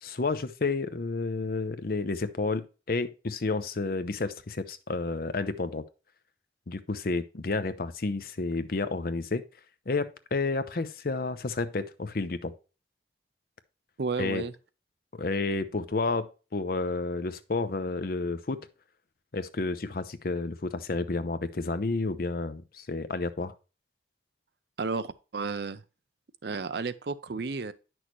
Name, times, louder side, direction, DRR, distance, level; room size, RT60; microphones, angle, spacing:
voice 1, 0.0-5.8 6.7-9.4 9.9-12.5 14.2-14.5 15.2-18.7 19.3-23.5, left 3 dB, 50° left, 0.6 m, -31 dB
voice 2, 14.0-14.5 24.8-25.8 26.4-27.7, right 4 dB, 60° right, 0.5 m, -32 dB
9.4 x 6.2 x 3.1 m
head